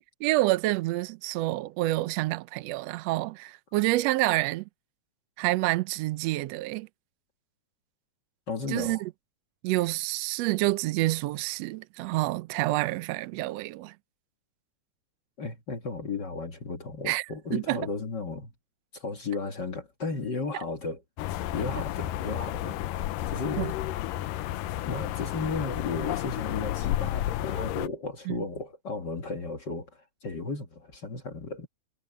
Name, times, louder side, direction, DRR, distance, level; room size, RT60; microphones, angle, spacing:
voice 1, 0.2-4.7 5.4-6.9 8.7-9.1 9.6-13.9 17.1-17.2 17.5-17.8 23.6-23.7 28.3-28.4, right 19 dB, 80° right, 1.5 m, -28 dB
voice 2, 8.5-9.0 15.4-18.5 18.9-21.0 21.5-22.7 23.3-23.6 24.8-31.7, left 4 dB, 40° left, 1.7 m, -34 dB
sound 1, 21.2-27.9, left 14 dB, 85° left, 2.4 m, -31 dB
omnidirectional pair, 3.8 m